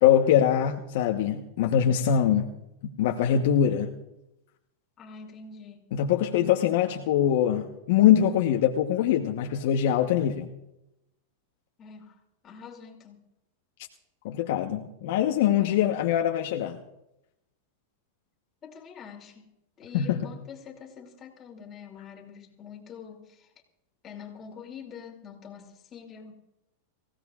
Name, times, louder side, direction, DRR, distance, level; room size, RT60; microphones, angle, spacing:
voice 1, 0.0-2.6 2.8-3.9 5.9-10.5 14.2-16.8 19.9-20.3, left 10 dB, 65° left, 3 dB, 1.0 m, -23 dB
voice 2, 5.0-5.8 11.8-12.2 12.4-13.2 15.6-15.8 18.6-19.5 19.8-23.5 24.0-26.3, left 6 dB, 25° left, 0 dB, 2.6 m, -45 dB
24.5 x 16.0 x 2.4 m, 0.90 s
supercardioid pair, 135°, 0 cm